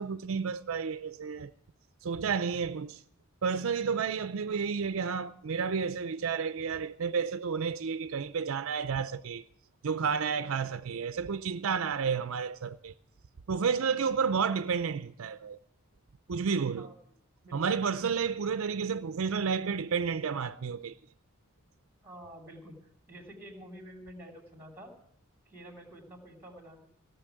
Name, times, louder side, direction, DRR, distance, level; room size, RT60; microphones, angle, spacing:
voice 1, 0.0-1.5 2.0-3.0 3.4-9.4 9.8-12.9 13.5-15.6 16.3-16.9 17.5-20.9, right 6 dB, 65° right, 0.5 m, -31 dB
voice 2, 22.0-22.7 23.1-24.9 25.5-26.8, equal, 10° right, 2.8 m, -48 dB
16.5 x 6.8 x 9.0 m
head